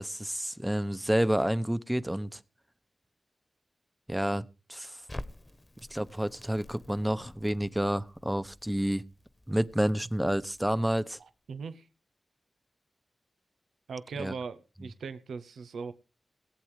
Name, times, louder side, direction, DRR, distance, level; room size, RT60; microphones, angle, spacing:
voice 1, 0.0-2.4 4.1-5.0 5.9-9.0 9.5-11.2 14.2-14.3, equal, 10° right, 14 dB, 1.0 m, -29 dB
Crackle, 5.1-11.2, left 1 dB, 25° left, 1.4 m, -48 dB
voice 2, 11.2-11.9 13.9-15.9, right 5 dB, 90° right, 11 dB, 0.8 m, -39 dB
18.5 x 8.1 x 4.8 m, 0.33 s
cardioid pair, 40°, 0 cm